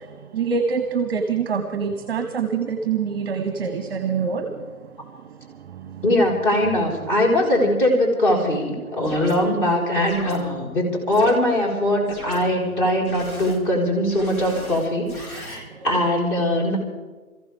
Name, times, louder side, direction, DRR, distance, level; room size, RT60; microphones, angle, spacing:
voice 1, 0.3-4.5 6.0-6.1, right 6 dB, 15° right, 7 dB, 1.0 m, -25 dB
voice 2, 6.0-16.8, left 1 dB, 35° left, -1 dB, 4.9 m, -21 dB
sound 1, 9.0-9.4 10.0-10.4 11.1-11.3 12.1-12.4 13.0-13.6 14.1-15.6, left 1 dB, 75° left, 6.9 m, -38 dB
26.5 x 15.0 x 3.6 m, 1.3 s
figure-of-eight pair, 155°, 43 cm